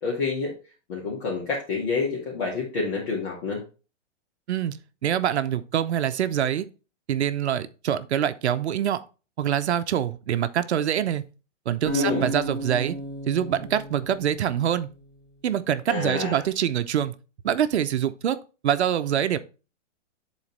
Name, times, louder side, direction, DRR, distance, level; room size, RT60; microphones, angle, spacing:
voice 1, 0.0-0.6 0.9-3.6 11.9-12.3 15.9-16.5, left 4 dB, 40° left, 2.2 m, -28 dB
voice 2, 4.5-6.7 7.1-9.0 9.4-11.3 11.7-12.9 13.3-14.9 15.4-17.1 17.4-19.4, right 10 dB, 65° right, 0.8 m, -25 dB
sound 1, 11.9-15.0, right 1 dB, 20° left, 1.7 m, -33 dB
11.5 x 4.0 x 3.3 m
hypercardioid pair, 175°, 37 cm